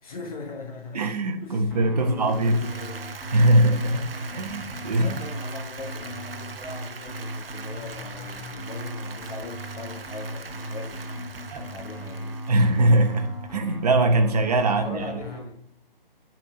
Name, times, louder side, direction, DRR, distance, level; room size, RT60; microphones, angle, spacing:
voice 1, 0.0-1.1 1.4-3.2 4.9-12.4 14.6-15.6, left 4 dB, 40° left, 1.3 m, -40 dB
voice 2, 0.9-2.7 3.3-5.1 11.5-11.6 12.5-15.0, right 1 dB, 40° right, 1.0 m, -21 dB
sound 1, 1.7-15.4, equal, 5° left, 2.5 m, -37 dB
Applause, 2.2-13.5, right 5 dB, 75° right, 0.8 m, -42 dB
9.0 x 4.4 x 5.6 m
figure-of-eight pair, 155°, 29 cm